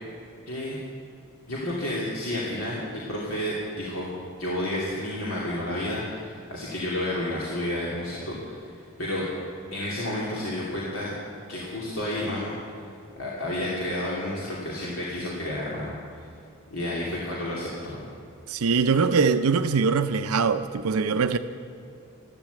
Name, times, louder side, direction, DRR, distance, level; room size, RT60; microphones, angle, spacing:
voice 1, 0.5-0.8 1.5-4.1 4.4-8.7 9.0-9.3 9.7-11.1 11.5-12.5 13.2-16.0 16.7-18.0, left 1 dB, 75° left, 2.8 m, -30 dB
voice 2, 18.5-21.4, right 5 dB, 90° right, 0.6 m, -22 dB
14.0 x 12.0 x 8.4 m
head